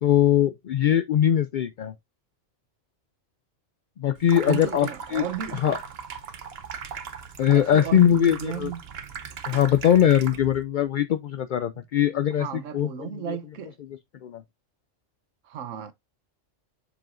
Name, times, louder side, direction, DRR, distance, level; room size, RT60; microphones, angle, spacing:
voice 1, 0.0-1.9 4.0-5.3 5.5-5.8 7.4-8.7 9.5-12.5 12.7-13.4 13.8-14.4, left 10 dB, 65° left, 0.5 m, -21 dB
Water tap faucet / Sink (filling or washing), 4.2-10.6, right 7 dB, 60° right, 1.0 m, -39 dB
voice 2, 4.3-5.8 7.5-8.8 12.4-13.8 15.5-15.9, right 8 dB, 85° right, 1.2 m, -34 dB
7.5 x 5.0 x 2.5 m
omnidirectional pair, 1.3 m